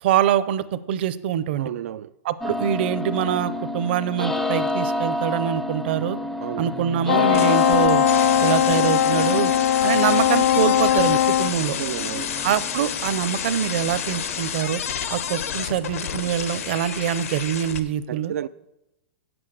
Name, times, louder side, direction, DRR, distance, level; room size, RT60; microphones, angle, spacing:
voice 1, 0.0-1.7 2.2-6.2 6.6-8.0 8.4-9.5 9.8-11.8 12.4-14.8 15.1-18.3, right 10 dB, 50° right, 0.6 m, -24 dB
voice 2, 1.6-2.1 6.4-6.7 11.8-12.3 18.1-18.5, right 11 dB, 80° right, 0.3 m, -32 dB
sound 1, 2.4-16.3, left 1 dB, 5° left, 0.4 m, -30 dB
Wind instrument woodwind instrument, 7.0-11.5, left 11 dB, 65° left, 0.5 m, -19 dB
sound 2, 7.3-17.8, left 8 dB, 85° left, 1.1 m, -30 dB
8.7 x 7.9 x 7.7 m
supercardioid pair, 170°, 8 cm